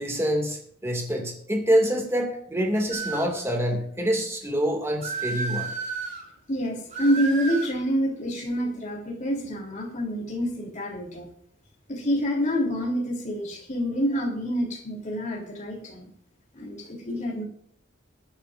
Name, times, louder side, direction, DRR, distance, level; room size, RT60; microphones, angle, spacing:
voice 1, 0.0-5.7, equal, 15° right, 2 dB, 2.2 m, -26 dB
sound 1, 2.9-3.4 5.0-6.2 6.9-7.7, right 4 dB, 40° right, 4.9 m, -32 dB
voice 2, 6.5-11.3 11.9-16.1 16.5-17.4, equal, 40° left, -1 dB, 3.3 m, -27 dB
22.0 x 10.0 x 2.6 m, 0.66 s
head